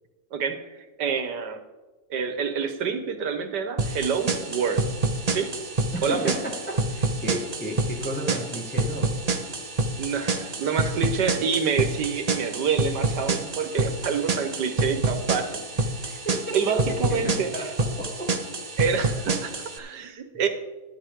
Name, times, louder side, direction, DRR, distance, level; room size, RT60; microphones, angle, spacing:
voice 1, 0.3-1.6 2.1-4.8 5.3-5.5 6.0-6.4 10.0-15.6 16.5-17.5 18.8-20.5, right 6 dB, 90° right, 7 dB, 1.8 m, -27 dB
sound 1, 3.8-19.8, right 3 dB, 30° right, 0.8 m, -28 dB
voice 2, 5.9-9.1 14.0-14.4 16.0-18.4, equal, 5° left, -1 dB, 1.6 m, -34 dB
12.0 x 11.0 x 3.7 m, 1.1 s
omnidirectional pair, 1.8 m